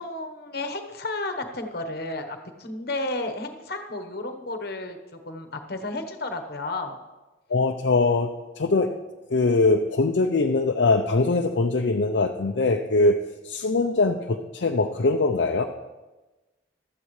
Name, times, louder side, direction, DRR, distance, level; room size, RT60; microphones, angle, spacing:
voice 1, 0.0-7.0, left 2 dB, 55° left, 6 dB, 1.1 m, -32 dB
voice 2, 7.5-8.3 8.6-8.9 9.3-13.1 13.4-15.7, left 3 dB, 70° left, 3 dB, 0.6 m, -22 dB
15.0 x 12.5 x 3.2 m, 1.1 s
head